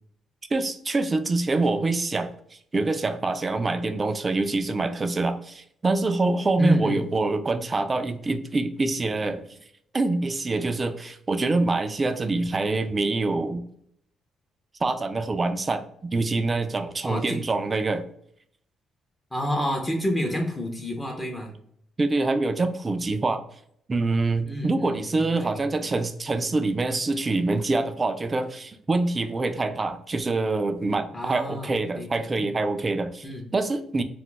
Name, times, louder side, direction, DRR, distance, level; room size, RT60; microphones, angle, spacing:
voice 1, 0.5-2.3 2.7-9.4 9.9-13.6 14.8-18.0 22.0-23.4 23.9-33.3 33.5-34.0, right 3 dB, 30° right, 8 dB, 0.3 m, -25 dB
voice 2, 6.6-7.0 17.0-17.4 19.3-21.5 24.4-25.8 31.1-31.7 31.9-32.5 33.2-33.5, equal, 15° left, 1 dB, 0.6 m, -29 dB
2.3 x 2.1 x 3.7 m, 0.70 s
cardioid pair, 90°, 0 cm